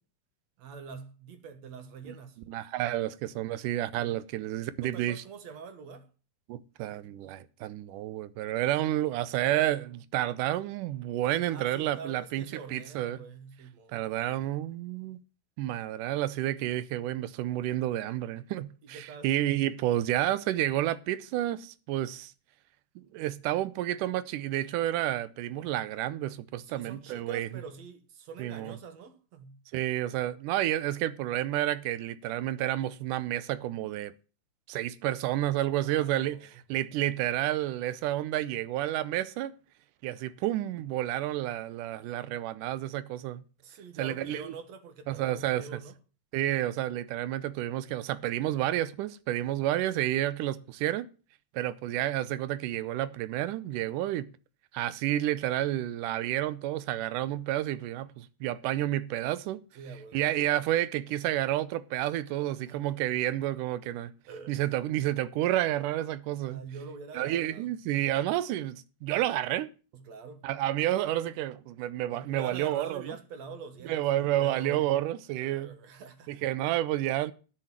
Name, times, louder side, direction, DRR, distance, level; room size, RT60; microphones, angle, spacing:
voice 1, 0.6-2.4 4.0-4.2 4.8-6.1 11.5-14.1 18.8-19.3 26.6-29.6 35.8-36.6 43.6-46.0 49.4-49.6 51.5-51.7 59.7-60.2 62.4-63.1 64.3-64.5 66.5-67.7 69.9-70.5 72.1-74.9 75.3-76.4, right 5 dB, 65° right, 2.4 m, -45 dB
voice 2, 2.5-5.2 6.5-13.2 13.9-15.2 15.6-22.3 23.0-27.5 28.4-28.8 29.7-34.1 34.7-36.4 36.7-39.5 40.0-43.4 44.0-44.5 45.1-45.7 46.3-51.1 51.5-54.3 54.7-59.6 60.1-64.1 64.5-66.6 67.2-69.7 70.4-73.2 73.9-75.7 76.3-77.3, right 14 dB, 85° right, 2.2 m, -30 dB
10.0 x 6.7 x 7.3 m
omnidirectional pair, 3.6 m